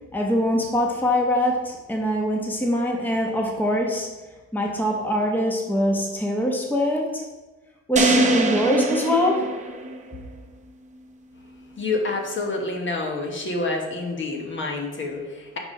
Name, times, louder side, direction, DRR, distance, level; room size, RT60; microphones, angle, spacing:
voice 1, 0.1-4.1 4.5-7.2 7.9-9.5, equal, 5° left, 0 dB, 1.1 m, -23 dB
sound 1, 8.0-10.2, right 2 dB, 25° right, 0.8 m, -22 dB
voice 2, 11.8-15.6, left 3 dB, 40° left, 1 dB, 1.3 m, -28 dB
5.3 x 4.8 x 4.9 m, 1.2 s
cardioid pair, 90°, 30 cm